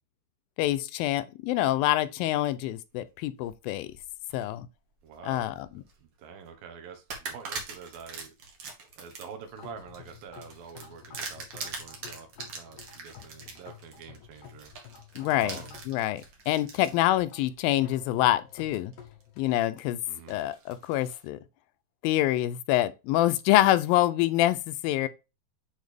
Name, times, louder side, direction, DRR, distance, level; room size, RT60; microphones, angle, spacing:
voice 1, 0.6-3.9 4.3-4.7 5.3-5.5 15.2-15.6 15.9-18.9 19.4-20.0 20.3-21.4 22.0-25.1, left 14 dB, 90° left, 2.4 m, -26 dB
sound 1, 3.2-4.5 5.0-6.0 6.4-6.5 7.1-17.0 17.6-17.7 18.7-19.2 19.6-21.3, right 4 dB, 50° right, 2.1 m, -42 dB
voice 2, 5.0-5.6 6.0-8.3 9.0-14.7 15.4-15.8 20.1-20.4, right 6 dB, 80° right, 3.0 m, -46 dB
sound 2, 9.4-19.5, left 8 dB, 70° left, 2.8 m, -51 dB
8.6 x 4.0 x 3.4 m
omnidirectional pair, 4.1 m